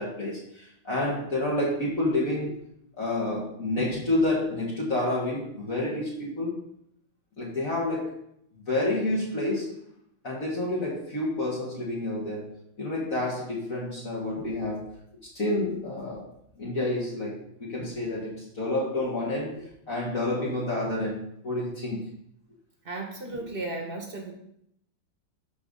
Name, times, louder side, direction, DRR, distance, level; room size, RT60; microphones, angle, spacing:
voice 1, 0.0-2.5 3.0-6.6 7.4-8.2 8.7-9.8 10.2-12.5 12.8-14.9 15.2-16.3 16.6-22.1, left 1 dB, 45° left, -6 dB, 2.4 m, -29 dB
voice 2, 22.8-24.3, right 2 dB, 30° right, 1 dB, 1.6 m, -35 dB
13.0 x 4.8 x 4.0 m, 0.74 s
omnidirectional pair, 2.1 m